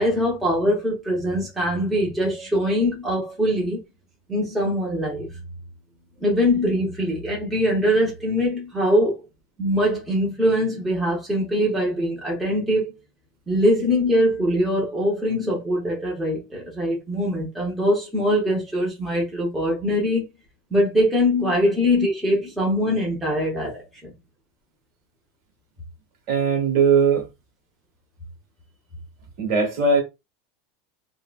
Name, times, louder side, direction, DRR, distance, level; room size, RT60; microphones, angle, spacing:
voice 1, 0.0-3.8 4.3-5.3 6.2-9.2 9.6-12.9 13.5-20.2 20.7-24.1, equal, 5° right, 0.7 m, -22 dB
voice 2, 26.3-27.3 29.4-30.0, right 5 dB, 45° right, 1.3 m, -19 dB
3.6 x 2.1 x 2.2 m
supercardioid pair, 170°, 0 cm